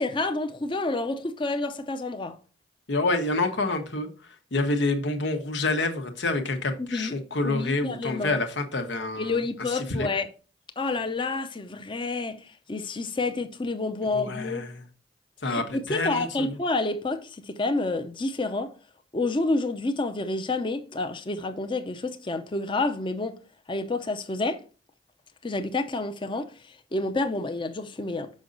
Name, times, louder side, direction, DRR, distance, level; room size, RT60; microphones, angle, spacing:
voice 1, 0.0-2.4 6.8-7.2 7.4-8.4 9.1-10.3 10.8-14.7 15.5-18.7 19.1-23.4 23.7-24.6 25.4-26.5 26.9-28.3, left 2 dB, 30° left, 0.6 m, -29 dB
voice 2, 2.9-4.1 4.5-9.4 9.7-10.1 14.1-14.7 15.4-16.6, left 2 dB, 85° left, 1.1 m, -27 dB
6.3 x 5.2 x 3.9 m
head